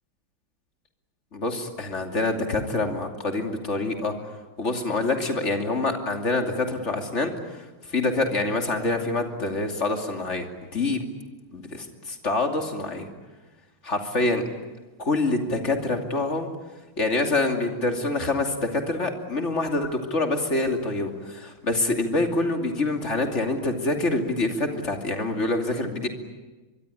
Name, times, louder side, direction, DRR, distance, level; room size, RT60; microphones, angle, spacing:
voice 1, 1.3-4.1 4.6-10.5 10.7-11.0 11.5-13.1 13.8-14.4 15.0-16.5 17.0-26.1, left 2 dB, 35° left, 4 dB, 3.0 m, -26 dB
24.0 x 24.0 x 10.0 m, 1.2 s
omnidirectional pair, 2.3 m